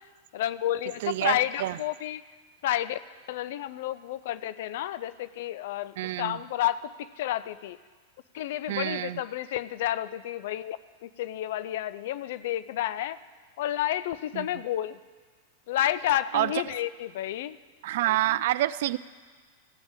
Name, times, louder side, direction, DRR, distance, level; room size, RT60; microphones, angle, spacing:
voice 1, 0.3-2.2 2.6-3.0 3.3-7.8 8.3-10.8 11.0-13.2 13.6-15.0 15.7-17.6, left 13 dB, 55° left, 14 dB, 0.4 m, -30 dB
voice 2, 1.0-1.8 6.0-6.4 8.7-9.2 14.3-14.5 16.3-16.8 17.8-19.0, right 15 dB, 55° right, 18 dB, 0.3 m, -28 dB
15.0 x 6.0 x 8.1 m, 1.5 s
figure-of-eight pair, 90°, 0 cm